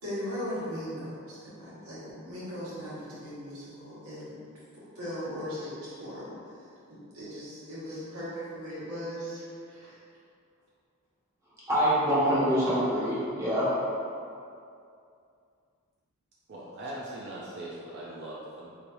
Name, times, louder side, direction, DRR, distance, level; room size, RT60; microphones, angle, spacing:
voice 1, 0.0-4.4 4.7-10.0, equal, 80° right, -10 dB, 1.4 m, -38 dB
voice 2, 11.7-13.7, equal, 15° right, -11 dB, 1.1 m, -25 dB
voice 3, 16.5-18.8, right 1 dB, 50° right, -6 dB, 0.5 m, -40 dB
4.2 x 3.2 x 2.6 m, 2.5 s
head